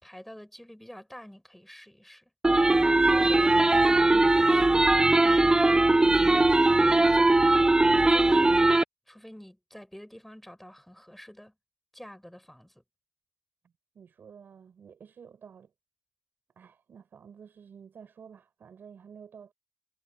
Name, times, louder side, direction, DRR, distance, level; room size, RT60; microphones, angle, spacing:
voice 1, 0.0-2.3 3.1-7.3 8.0-8.6 9.1-11.5 11.9-12.8, equal, 5° left, 5.9 m, -47 dB
sound 1, 2.4-8.8, right 2 dB, 20° right, 0.6 m, -20 dB
voice 2, 13.9-15.7 16.6-19.5, right 7 dB, 85° right, 5.8 m, -50 dB
wide cardioid pair, 90°, 3 cm